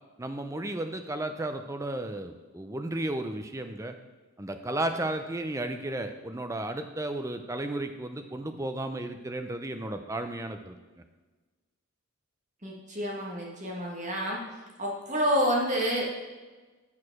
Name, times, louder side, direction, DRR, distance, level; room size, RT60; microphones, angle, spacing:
voice 1, 0.2-3.9 4.4-10.8, right 1 dB, 15° right, 7 dB, 0.5 m, -33 dB
voice 2, 12.6-14.4 14.8-16.0, equal, 35° right, -2 dB, 1.6 m, -28 dB
8.4 x 4.8 x 6.0 m, 1.3 s
head